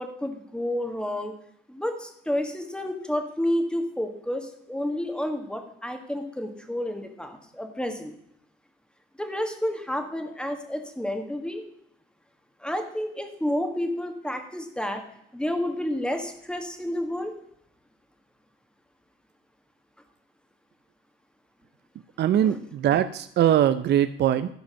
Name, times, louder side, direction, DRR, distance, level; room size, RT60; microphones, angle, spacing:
voice 1, 0.0-1.3 1.7-8.1 9.2-11.6 12.6-15.0 15.3-17.3 22.4-22.7, left 1 dB, 5° left, 5 dB, 1.7 m, -30 dB
voice 2, 22.2-24.5, right 10 dB, 60° right, 12 dB, 0.5 m, -22 dB
12.0 x 5.1 x 6.3 m, 0.73 s
cardioid pair, 90°, 20 cm